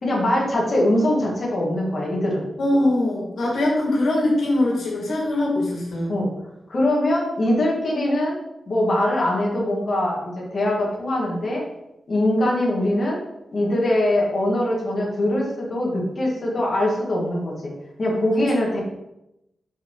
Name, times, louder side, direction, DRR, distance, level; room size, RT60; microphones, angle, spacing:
voice 1, 0.0-2.5 6.1-6.3 6.7-8.4 8.7-11.6 12.1-13.2 13.5-17.7 18.0-18.8, left 1 dB, 40° left, -3 dB, 2.0 m, -22 dB
voice 2, 2.6-6.2 18.3-18.4, left 1 dB, 75° left, -2 dB, 2.2 m, -22 dB
5.8 x 5.5 x 4.8 m, 0.89 s
wide cardioid pair, 160°, 0 cm